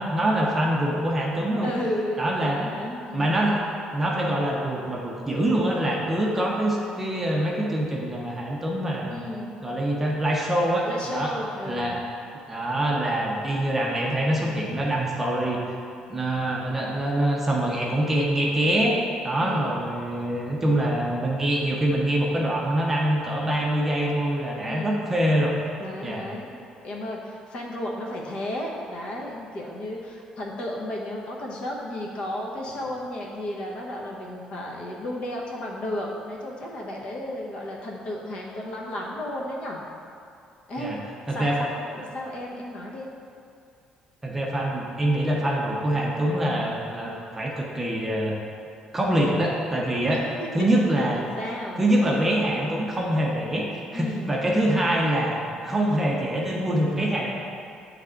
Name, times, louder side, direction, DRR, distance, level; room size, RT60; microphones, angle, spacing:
voice 1, 0.0-1.7 2.2-2.6 3.1-3.6 3.9-9.2 9.6-11.3 11.7-12.0 12.4-15.6 16.1-19.0 19.2-25.5 26.0-26.3 40.8-41.0 41.3-41.6 44.2-48.4 48.9-50.2 50.5-51.2 51.8-53.7 53.9-55.4 55.6-57.4, right 1 dB, 10° right, -3 dB, 0.6 m, -24 dB
voice 2, 1.6-3.4 9.1-9.5 10.9-12.0 19.4-19.8 24.6-25.0 25.8-39.8 40.7-41.0 41.3-43.1 50.1-50.8 51.2-51.9 53.9-54.4, left 1 dB, 50° left, -2 dB, 0.9 m, -33 dB
9.1 x 3.3 x 3.7 m, 2.5 s
cardioid pair, 180°, 2 cm